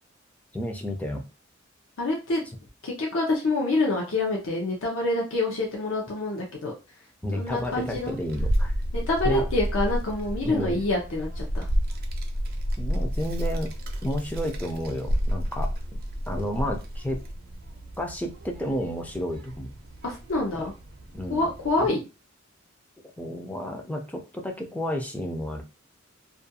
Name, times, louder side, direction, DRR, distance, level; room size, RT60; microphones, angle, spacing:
voice 1, 0.5-1.2 7.2-8.7 9.2-9.5 10.4-10.8 12.8-13.7 14.0-15.7 16.3-17.2 18.0-19.7 20.5-20.6 21.1-21.5 21.8-22.0 23.2-25.6, equal, 10° left, 3 dB, 0.4 m, -31 dB
voice 2, 2.0-2.5 2.8-6.7 7.3-8.2 8.9-11.7 20.0-20.7 21.3-22.0, left 2 dB, 70° left, -1 dB, 0.6 m, -26 dB
Child speech kid speaking, 7.5-21.9, equal, 50° right, 0.5 m, -31 dB
2.4 x 2.2 x 2.7 m, 0.30 s
head